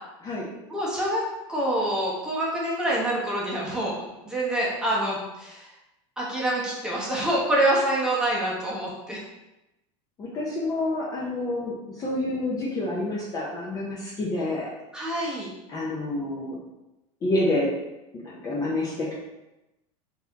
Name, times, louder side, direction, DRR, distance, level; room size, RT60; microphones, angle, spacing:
voice 1, 0.7-5.7 6.2-9.2 14.9-15.5, right 1 dB, 5° right, -6 dB, 0.9 m, -26 dB
voice 2, 10.2-14.7 15.7-16.6 17.2-17.7 18.1-19.1, left 2 dB, 20° left, -6 dB, 0.7 m, -28 dB
4.1 x 2.7 x 3.5 m, 0.97 s
supercardioid pair, 150°, 17 cm